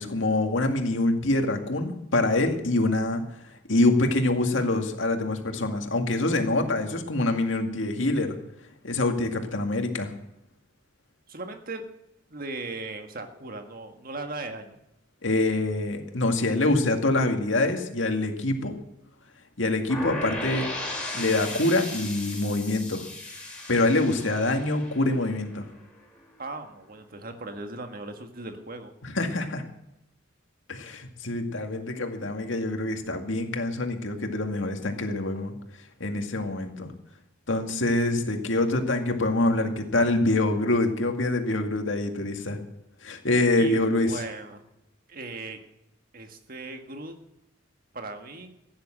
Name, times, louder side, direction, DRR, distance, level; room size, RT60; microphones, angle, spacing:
voice 1, 0.0-3.2 3.7-8.4 8.8-10.1 15.2-18.7 19.6-20.7 21.1-23.1 23.7-25.7 29.0-29.6 30.7-35.6 36.0-36.9 37.5-42.6 43.0-44.2, left 2 dB, 75° left, 5 dB, 2.1 m, -25 dB
voice 2, 11.3-11.8 12.3-14.8 26.4-28.9 43.6-44.6 45.1-45.6 46.1-47.2 47.9-48.5, right 2 dB, 50° right, 6 dB, 1.6 m, -38 dB
sound 1, 19.9-25.8, left 1 dB, 5° left, 4.0 m, -36 dB
15.5 x 10.5 x 7.5 m, 0.88 s
head